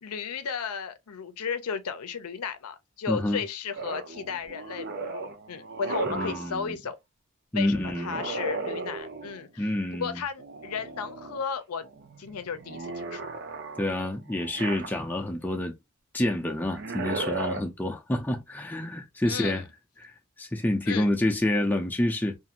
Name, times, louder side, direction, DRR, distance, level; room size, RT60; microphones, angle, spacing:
voice 1, 0.0-7.0 7.5-11.8 12.2-13.3 19.3-19.6 20.9-21.1, left 6 dB, 85° left, 0.5 m, -34 dB
voice 2, 3.1-3.4 6.1-6.8 7.5-8.2 9.6-10.2 13.8-15.7 16.1-19.6 20.0-22.4, left 1 dB, 10° left, 0.4 m, -28 dB
sound 1, 3.8-6.6 7.9-9.5 10.4-11.4 11.8-15.3 16.6-17.6, right 3 dB, 50° right, 0.5 m, -36 dB
2.5 x 2.5 x 2.8 m
head